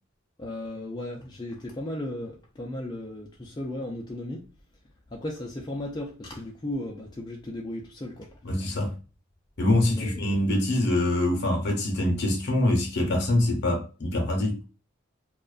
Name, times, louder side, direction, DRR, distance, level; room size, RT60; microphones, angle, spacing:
voice 1, 0.4-4.5 5.1-8.4 9.8-10.4, left 1 dB, 20° left, 0.4 m, -35 dB
voice 2, 8.4-8.9 9.6-14.6, left 1 dB, 55° left, 0.7 m, -24 dB
2.4 x 2.2 x 2.4 m
head